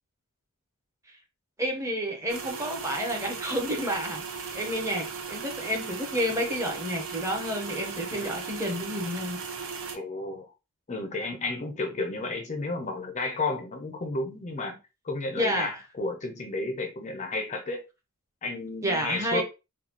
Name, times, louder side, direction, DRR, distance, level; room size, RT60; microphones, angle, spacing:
voice 1, 1.6-9.4 15.4-15.7 18.8-19.4, equal, 15° right, 0.9 m, -30 dB
sound 1, 2.3-10.0, right 5 dB, 60° right, 0.8 m, -37 dB
voice 2, 9.9-10.5 10.9-14.8 15.0-17.8 18.4-19.4, left 2 dB, 30° left, 0.5 m, -32 dB
3.9 x 2.3 x 2.9 m
head